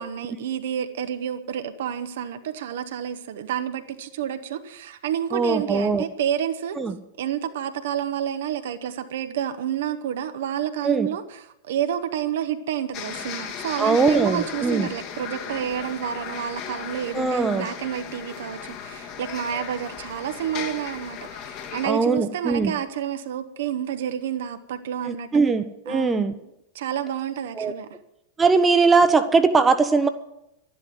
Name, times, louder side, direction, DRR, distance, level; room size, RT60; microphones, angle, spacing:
voice 1, 0.0-6.8 7.2-25.3 25.9-26.4 26.7-27.9, right 9 dB, 60° right, 9 dB, 1.1 m, -29 dB
voice 2, 5.3-6.0 6.8-7.0 10.8-11.1 13.8-14.9 17.1-17.7 21.8-22.7 25.0-26.3 27.6-27.7 28.4-30.1, right 4 dB, 15° right, 9 dB, 1.0 m, -20 dB
sound 1, 12.9-21.9, left 8 dB, 40° left, 1.9 m, -36 dB
12.5 x 11.0 x 7.8 m, 0.83 s
figure-of-eight pair, 90°, 0 cm